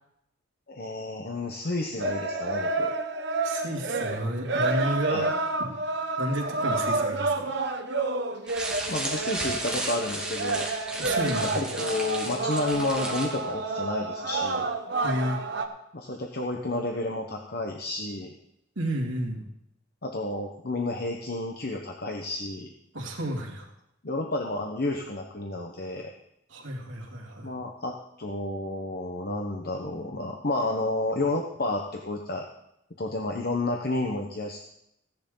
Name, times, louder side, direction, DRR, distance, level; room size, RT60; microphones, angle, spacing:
voice 1, 0.7-2.9 5.1-5.3 8.9-10.7 11.4-14.7 15.9-18.3 20.0-22.7 24.0-26.1 27.4-32.5 33.0-34.6, left 2 dB, 50° left, 2 dB, 1.1 m, -31 dB
sound 1, 2.0-15.7, right 2 dB, 60° right, 1.2 m, -29 dB
voice 2, 3.4-5.3 5.6-5.7 6.2-7.5 11.0-11.6 15.0-15.4 18.8-19.5 22.9-23.7 26.5-27.5, right 1 dB, 80° right, 1 dB, 2.7 m, -31 dB
sound 2, 8.5-13.5, right 2 dB, 5° right, 2.0 m, -34 dB
16.5 x 10.5 x 4.0 m, 0.80 s
head